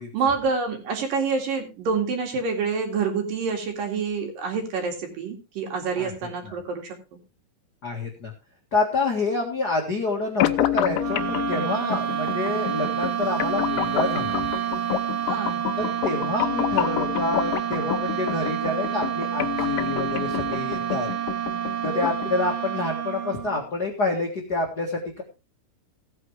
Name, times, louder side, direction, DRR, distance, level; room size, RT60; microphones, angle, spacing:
voice 1, 0.1-7.0 15.2-15.6, right 5 dB, 55° right, 3 dB, 3.6 m, -27 dB
voice 2, 6.0-6.5 7.8-8.3 8.7-14.4 15.8-21.1 21.8-25.2, left 3 dB, 65° left, 0 dB, 0.9 m, -28 dB
sound 1, 10.4-22.4, left 14 dB, 85° left, 1.9 m, -29 dB
sound 2, 11.0-23.7, right 10 dB, 80° right, 4.6 m, -29 dB
16.5 x 9.0 x 3.3 m, 0.29 s
omnidirectional pair, 4.9 m